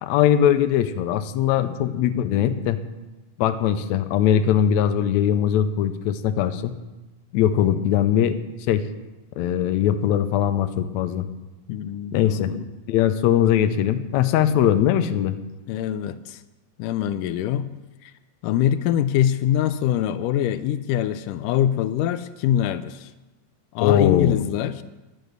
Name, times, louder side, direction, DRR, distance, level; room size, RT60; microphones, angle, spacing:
voice 1, 0.0-2.8 3.4-6.8 7.3-8.4 8.7-8.8 9.4-11.3 12.1-12.5 12.9-15.4 23.8-24.4, left 10 dB, 75° left, 10 dB, 1.9 m, -20 dB
voice 2, 11.7-12.7 15.7-16.4 16.8-17.7 18.0-18.1 18.4-23.1 23.7-24.8, left 11 dB, 90° left, 13 dB, 2.2 m, -24 dB
11.0 x 10.5 x 6.6 m, 1.1 s
omnidirectional pair, 3.7 m